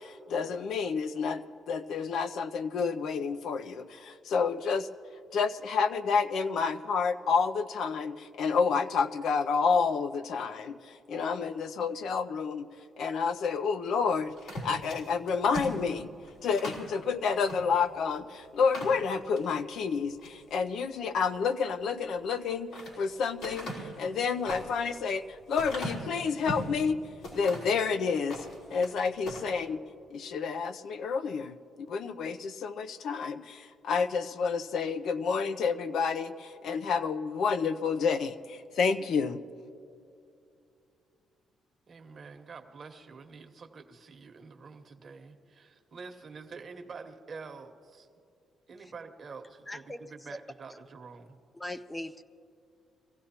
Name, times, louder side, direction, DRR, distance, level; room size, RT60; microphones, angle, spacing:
voice 1, 0.0-4.9 5.3-12.7 13.0-16.1 16.4-25.2 25.5-27.0 27.3-28.4 28.7-29.8 30.1-39.4, left 5 dB, 70° left, 9 dB, 0.5 m, -29 dB
sound 1, 14.4-16.9 17.4-17.6 18.0-18.1 18.6-19.5 20.0-20.4 22.2-23.0 23.4-26.8 27.2-27.8 28.2-28.9 29.2-29.5, equal, 90° left, 3.8 m, -39 dB
voice 2, 41.9-48.1 48.7-51.4, right 4 dB, 45° right, 6 dB, 1.1 m, -47 dB
voice 3, 49.7-50.0 50.3-50.4 51.5-52.2, left 1 dB, 15° left, 10 dB, 0.4 m, -39 dB
23.5 x 15.5 x 2.9 m, 2.5 s
cardioid pair, 90°, 0 cm